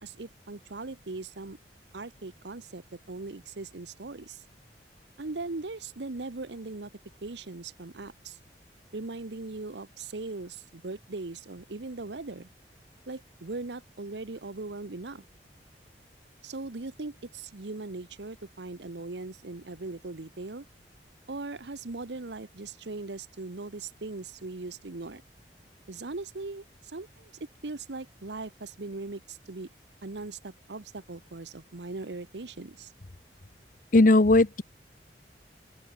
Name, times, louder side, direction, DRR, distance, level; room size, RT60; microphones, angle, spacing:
voice 1, 0.0-1.6 1.9-4.4 5.2-6.9 7.2-8.4 8.9-12.5 13.1-15.2 16.4-20.6 21.3-25.2 25.9-27.3 27.6-29.7 30.0-32.9, right 3 dB, 80° right, 1.0 m, -39 dB
voice 2, 33.9-34.6, left 2 dB, 50° left, 0.9 m, -18 dB
head